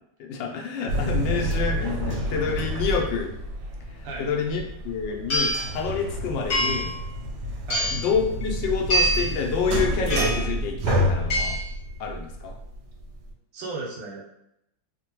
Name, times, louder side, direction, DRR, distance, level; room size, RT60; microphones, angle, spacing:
voice 1, 0.2-3.3 3.9-6.9 7.9-11.6 12.0-12.5, left 5 dB, 80° left, 1 dB, 1.3 m, -28 dB
sound 1, 0.9-13.3, right 1 dB, 75° right, 1.0 m, -29 dB
sound 2, 4.5-4.6 5.3-5.7 6.5-7.0 7.7-8.1 8.9-9.4 10.1-10.5 11.3-11.7, equal, 50° left, 1.4 m, -25 dB
voice 2, 13.5-14.3, right 3 dB, 90° right, -1 dB, 1.5 m, -35 dB
3.6 x 2.1 x 2.9 m, 0.78 s
omnidirectional pair, 2.0 m